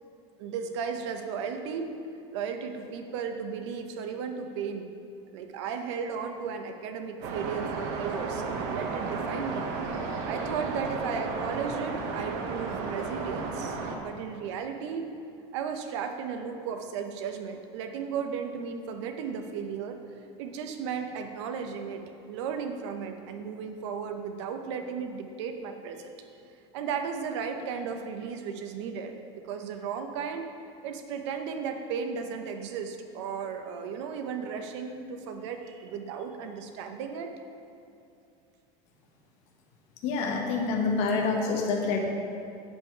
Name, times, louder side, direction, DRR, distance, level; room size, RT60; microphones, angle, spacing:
voice 1, 0.4-1.9 2.3-4.9 5.3-9.7 10.3-15.1 15.5-20.0 20.4-22.0 22.3-26.1 26.7-30.5 30.8-37.3, right 6 dB, 80° right, 6 dB, 0.9 m, -35 dB
sound 1, 7.2-14.0, right 4 dB, 55° right, 1.0 m, -33 dB
voice 2, 40.0-42.0, left 4 dB, 45° left, 0 dB, 1.4 m, -27 dB
8.3 x 7.3 x 4.6 m, 2.6 s
cardioid pair, 170°, 15 cm